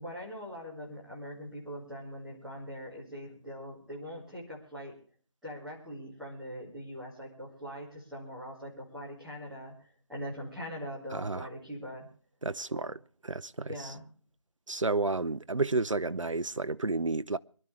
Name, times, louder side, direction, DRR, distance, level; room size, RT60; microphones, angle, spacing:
voice 1, 0.0-4.9 5.4-9.7 10.1-12.1 12.7-12.9 13.6-14.0, equal, ahead, 2.3 m, -42 dB
voice 2, 11.1-11.5 12.4-13.0 13.2-13.9 14.7-17.4, right 3 dB, 70° right, 0.6 m, -31 dB
24.0 x 12.0 x 3.3 m
figure-of-eight pair, 165°, 17 cm